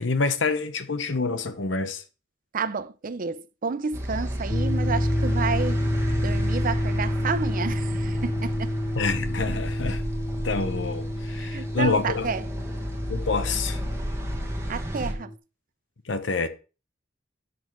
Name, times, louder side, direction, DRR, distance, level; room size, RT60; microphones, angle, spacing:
voice 1, 0.0-2.0 9.0-10.0 10.4-12.3 13.1-13.8 16.1-16.5, left 4 dB, 65° left, 0.9 m, -27 dB
voice 2, 2.5-5.8 6.2-8.7 11.3-12.4 14.7-15.3, right 5 dB, 45° right, 0.5 m, -30 dB
sound 1, 3.9-15.1, equal, 15° right, 1.4 m, -33 dB
sound 2, 4.5-15.4, left 1 dB, 20° left, 0.4 m, -29 dB
11.0 x 6.2 x 3.0 m
head